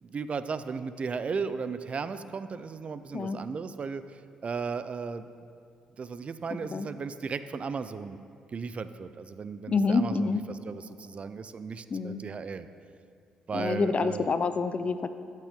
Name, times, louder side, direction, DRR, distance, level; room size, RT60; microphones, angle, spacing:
voice 1, 0.0-5.3 6.0-8.2 8.5-12.7 13.5-14.3, right 5 dB, 45° right, 12 dB, 0.5 m, -35 dB
voice 2, 9.7-10.4 11.9-12.2 13.5-15.1, left 4 dB, 45° left, 12 dB, 0.6 m, -27 dB
14.0 x 7.5 x 3.7 m, 2.3 s
hypercardioid pair, 50°, 3 cm